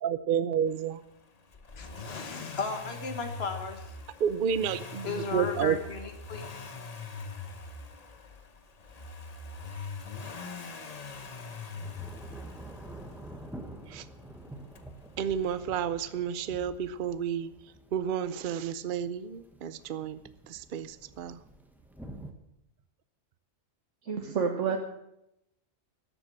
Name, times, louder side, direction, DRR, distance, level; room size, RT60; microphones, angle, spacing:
voice 1, 0.0-1.0 4.2-5.8 13.9-14.1 15.2-20.2 20.5-21.4, right 8 dB, 55° right, 14 dB, 0.7 m, -31 dB
Accelerating revving vroom, 1.5-13.5 14.8-14.9, left 4 dB, 35° left, 1.0 m, -42 dB
voice 2, 1.8-3.9 5.1-6.7, left 4 dB, 55° left, 6 dB, 1.8 m, -36 dB
Thunder / Rain, 7.6-7.7 10.6-22.3, right 1 dB, ahead, 1.2 m, -48 dB
voice 3, 24.0-24.8, right 6 dB, 75° right, 3 dB, 1.4 m, -29 dB
13.5 x 8.0 x 7.5 m, 0.84 s
omnidirectional pair, 1.2 m